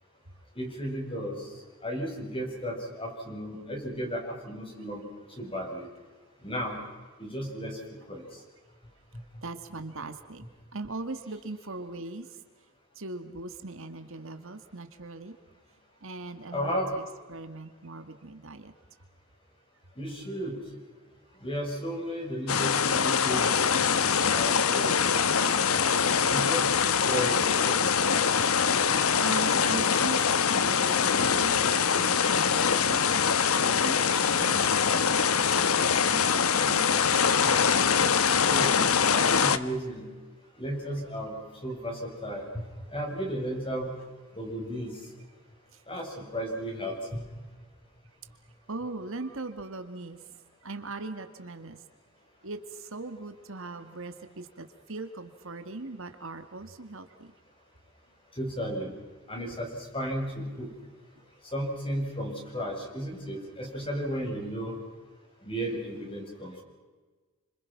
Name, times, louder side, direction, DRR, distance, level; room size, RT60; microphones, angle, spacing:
voice 1, 0.6-1.4 1.8-5.0 5.4-5.9 6.4-6.8 7.2-7.8 8.1-8.2 16.5-16.9 20.0-20.6 21.4-25.0 25.3-25.6 26.3-26.6 27.0-27.8 38.4-38.7 39.1-40.1 40.6-42.6 42.9-43.9 44.4-45.0 45.9-47.2 58.4-58.9 59.3-60.7 61.5-64.8 65.4-66.6, equal, 25° left, 0 dB, 8.0 m, -34 dB
voice 2, 9.4-10.4 10.7-12.3 13.0-15.3 16.0-17.0 17.3-18.7 29.2-33.0 33.6-34.6 34.9-37.2 48.7-50.2 50.6-51.8 52.4-57.3, right 3 dB, 65° right, 8 dB, 2.0 m, -40 dB
sound 1, 22.5-39.6, left 6 dB, 80° left, 1.1 m, -24 dB
30.0 x 27.0 x 6.0 m, 1.3 s
head